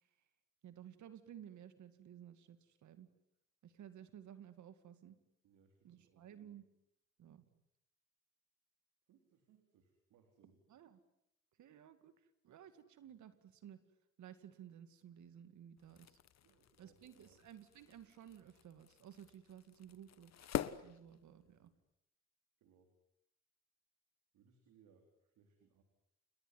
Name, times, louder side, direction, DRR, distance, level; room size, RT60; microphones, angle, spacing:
voice 1, 0.6-3.1 3.6-5.2 5.8-6.6 7.2-7.4 10.7-11.0 11.6-12.1 12.4-13.8 14.2-16.2 16.8-21.7, right 10 dB, 70° right, 11 dB, 2.2 m, -56 dB
voice 2, 5.4-6.6 9.1-10.9 16.4-17.5 21.4-21.8 22.6-22.9 24.3-25.8, right 6 dB, 85° right, 4 dB, 4.3 m, -70 dB
sound 1, 15.8-21.8, left 10 dB, 60° left, 1.4 m, -47 dB
29.0 x 20.5 x 9.6 m, 0.82 s
cardioid pair, 90°, 30 cm